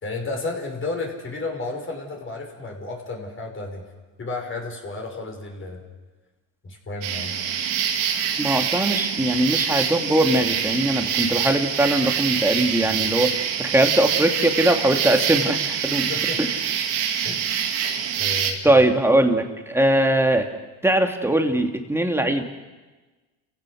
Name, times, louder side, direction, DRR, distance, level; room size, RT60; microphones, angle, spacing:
voice 1, 0.0-3.8 4.2-5.8 6.6-7.4 16.1-16.4 17.2-17.4 18.1-18.8, left 3 dB, 30° left, 1 dB, 5.7 m, -32 dB
sound 1, 7.0-18.5, right 8 dB, 80° right, 2.6 m, -25 dB
voice 2, 8.4-16.1 16.4-16.5 17.2-17.4 18.6-20.5 20.8-22.4, right 1 dB, 5° right, 4 dB, 2.5 m, -21 dB
30.0 x 16.0 x 6.5 m, 1.2 s
supercardioid pair, 95°, 39 cm